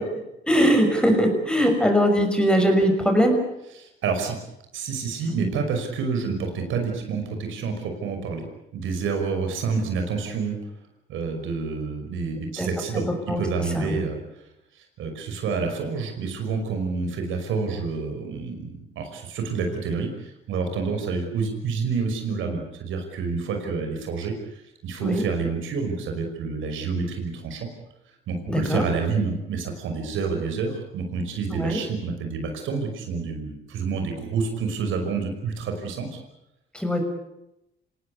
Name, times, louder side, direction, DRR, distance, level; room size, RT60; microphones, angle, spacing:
voice 1, 0.5-3.4 5.4-5.5 12.6-12.7 13.3-13.4 13.7-14.0 25.0-25.2 28.5-28.8 31.6-31.8 36.7-37.0, equal, 5° left, 4 dB, 6.1 m, -20 dB
voice 2, 3.7-4.4 4.7-8.4 8.7-10.6 11.1-14.2 15.0-27.7 28.3-36.2, right 5 dB, 85° right, 5 dB, 5.7 m, -28 dB
26.5 x 18.5 x 8.6 m, 0.86 s
cardioid pair, 90°, 20 cm